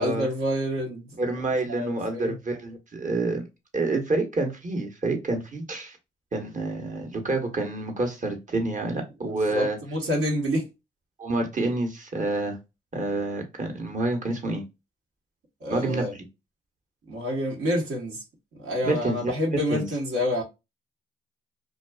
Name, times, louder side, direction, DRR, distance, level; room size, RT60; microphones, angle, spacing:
voice 1, 0.0-1.0 1.7-2.4 9.2-10.7 15.6-16.1 17.1-18.2 18.6-20.4, equal, 75° right, 1.0 m, -28 dB
voice 2, 1.2-3.4 3.7-6.0 6.3-9.8 11.2-12.6 12.9-14.6 15.7-16.3 18.8-19.3 19.7-19.9, right 2 dB, 40° right, 1.0 m, -28 dB
2.4 x 2.3 x 2.2 m
supercardioid pair, 50°, 20 cm